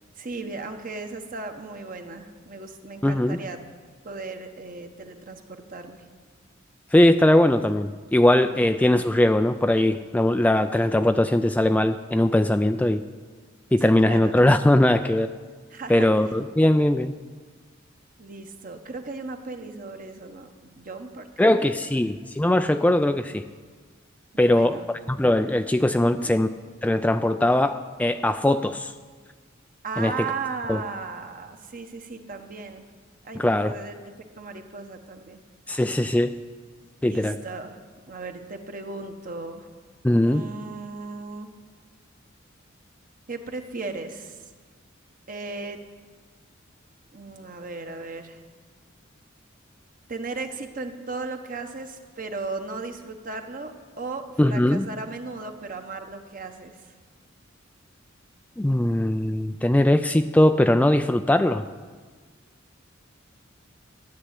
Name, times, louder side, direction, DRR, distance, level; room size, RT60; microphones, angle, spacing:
voice 1, 0.2-3.6 4.0-6.0 8.5-8.6 13.8-14.4 15.7-16.1 18.2-21.9 24.3-24.8 26.0-26.3 29.8-32.8 33.2-35.4 37.0-37.8 38.1-39.7 40.2-41.5 43.3-44.5 45.3-45.8 47.1-48.4 50.1-56.8, right 3 dB, 45° right, 5 dB, 1.2 m, -36 dB
voice 2, 3.0-3.4 6.9-13.0 13.7-15.3 15.9-17.1 21.4-23.5 24.4-24.8 25.1-26.5 26.8-28.9 30.0-30.3 30.7-30.8 33.3-33.7 35.7-36.4 37.0-37.4 40.0-40.4 54.4-54.9 58.6-61.6, left 1 dB, 10° left, 8 dB, 0.3 m, -20 dB
13.0 x 7.7 x 10.0 m, 1.5 s
head